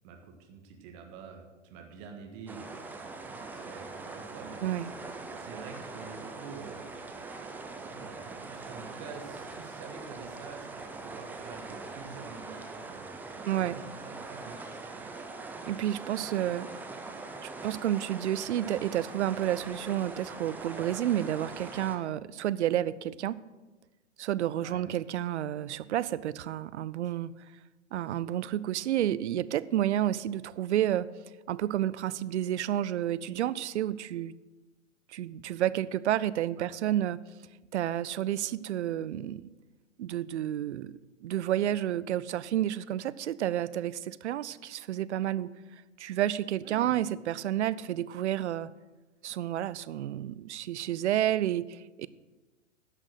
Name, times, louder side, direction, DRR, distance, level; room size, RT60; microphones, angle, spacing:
voice 1, 0.0-2.7 3.0-4.9 5.3-7.0 7.6-13.0 13.3-15.1 24.6-24.8 36.6-36.7 46.6-47.0, right 5 dB, 40° right, 3 dB, 1.5 m, -47 dB
sound 1, 2.5-22.0, right 3 dB, 5° right, 0.4 m, -42 dB
voice 2, 13.5-13.8 15.7-16.7 17.4-23.4 24.2-27.3 27.9-31.1 31.5-34.3 35.1-37.2 37.7-39.5 40.0-40.9 41.2-45.5 46.0-48.7 49.2-52.1, right 12 dB, 65° right, 18 dB, 0.5 m, -30 dB
11.0 x 6.1 x 6.6 m, 1.2 s
hypercardioid pair, 115°, 37 cm